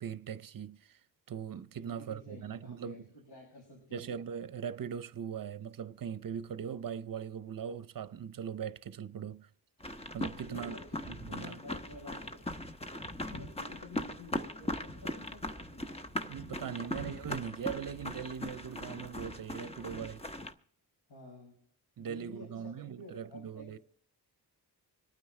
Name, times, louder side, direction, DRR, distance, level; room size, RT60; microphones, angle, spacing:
voice 1, 0.0-1.0 1.3-3.0 3.9-9.5 10.1-10.7 11.1-11.6 16.2-20.3 22.0-23.8, right 8 dB, 55° right, 0.7 m, -40 dB
voice 2, 1.8-4.1 10.4-11.0 11.3-12.5 13.2-15.9 16.5-16.9 21.1-21.6 22.0-23.8, left 1 dB, 75° left, 6.5 m, -51 dB
sound 1, 9.8-20.5, left 1 dB, 15° left, 0.9 m, -40 dB
26.0 x 9.4 x 3.2 m
wide cardioid pair, 125°, 40 cm